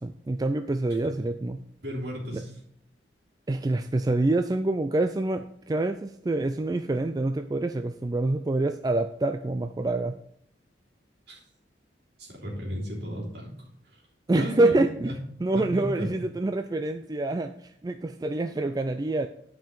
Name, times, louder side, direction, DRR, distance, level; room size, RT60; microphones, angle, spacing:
voice 1, 0.0-1.6 2.3-2.4 3.5-10.1 14.3-19.3, right 2 dB, 20° right, 8 dB, 0.3 m, -26 dB
voice 2, 1.8-2.5 11.3-11.4 12.2-13.7 14.3-14.7 15.1-15.2 15.5-16.1, equal, 60° right, -3 dB, 3.3 m, -34 dB
10.0 x 5.5 x 5.4 m, 0.68 s
head